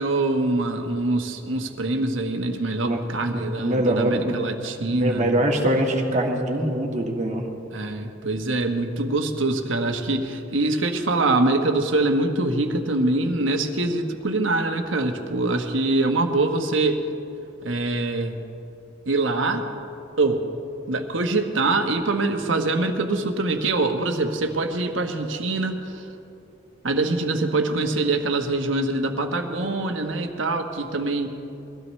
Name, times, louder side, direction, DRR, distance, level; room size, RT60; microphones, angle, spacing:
voice 1, 0.0-5.4 7.7-17.0 17.6-18.4 19.1-19.7 20.2-20.4 20.9-26.0 26.8-31.4, right 2 dB, 75° right, 4 dB, 1.3 m, -24 dB
voice 2, 3.3-4.4 4.9-7.5, right 1 dB, 40° right, 1 dB, 1.7 m, -23 dB
22.5 x 16.0 x 3.2 m, 2.8 s
head